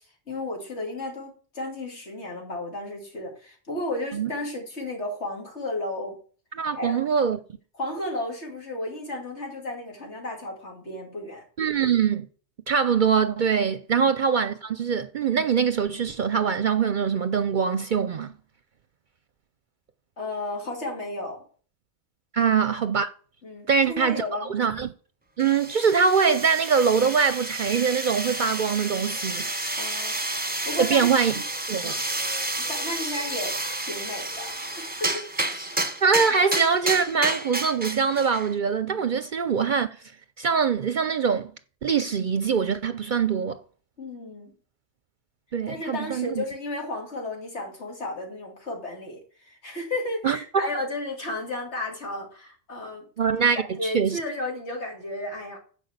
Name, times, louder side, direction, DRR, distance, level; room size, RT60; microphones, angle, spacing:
voice 1, 0.0-6.2 6.7-7.0 7.7-11.4 14.0-14.1 20.2-21.4 22.4-22.5 23.4-24.5 29.8-31.1 32.6-33.5 33.8-35.3 44.0-44.5 45.7-53.0 53.4-55.6, left 2 dB, 90° left, 2.9 m, -33 dB
voice 2, 6.6-7.4 11.6-12.3 12.7-18.3 22.3-23.1 23.7-24.2 24.5-24.9 25.4-29.5 30.8-31.3 31.7-32.0 36.0-39.9 40.4-41.5 41.8-43.6 45.5-46.4 50.2-50.4 53.2-54.2, right 6 dB, 55° right, 0.7 m, -23 dB
sound 1, 25.4-38.5, right 2 dB, 10° right, 0.9 m, -30 dB
11.0 x 5.0 x 8.0 m
omnidirectional pair, 1.1 m